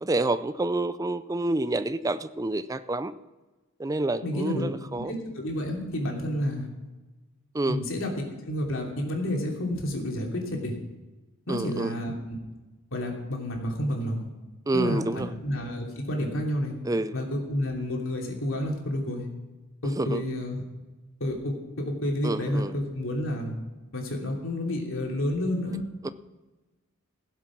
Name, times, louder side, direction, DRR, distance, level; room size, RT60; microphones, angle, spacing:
voice 1, 0.0-3.1 3.8-5.1 7.5-7.8 11.5-11.9 14.7-15.3 16.8-17.1 20.0-20.2 22.2-22.7 26.0-26.1, right 2 dB, 15° right, 14 dB, 0.4 m, -28 dB
voice 2, 4.2-4.7 5.0-6.7 7.7-10.7 11.5-12.4 12.9-14.3 14.7-16.7 17.1-19.3 19.8-20.6 21.2-23.5 23.9-25.8, left 1 dB, 75° left, 0 dB, 2.9 m, -30 dB
16.0 x 7.7 x 6.0 m, 1.2 s
head